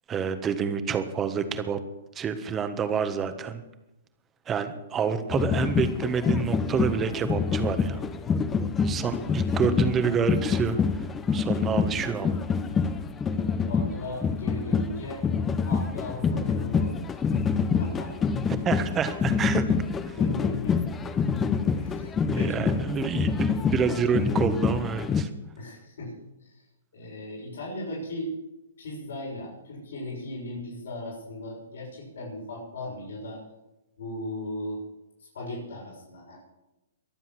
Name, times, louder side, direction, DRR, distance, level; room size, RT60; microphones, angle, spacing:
voice 1, 0.1-1.8 2.1-3.6 4.5-8.0 8.8-10.8 11.3-12.3 18.6-19.6 20.1-20.2 22.3-25.3, right 6 dB, 20° right, 9 dB, 1.4 m, -28 dB
sound 1, 5.3-25.2, left 5 dB, 20° left, 0.9 m, -26 dB
voice 2, 13.7-15.2 15.7-17.2 17.8-18.2 20.2-20.9 21.3-21.5 21.7-22.8 25.6-26.1 26.4-26.6 26.9-28.3 28.8-33.4 34.0-34.8 35.2-36.4, left 1 dB, 70° left, -3 dB, 6.6 m, -37 dB
23.0 x 7.6 x 6.2 m, 0.97 s
hypercardioid pair, 120°, 0 cm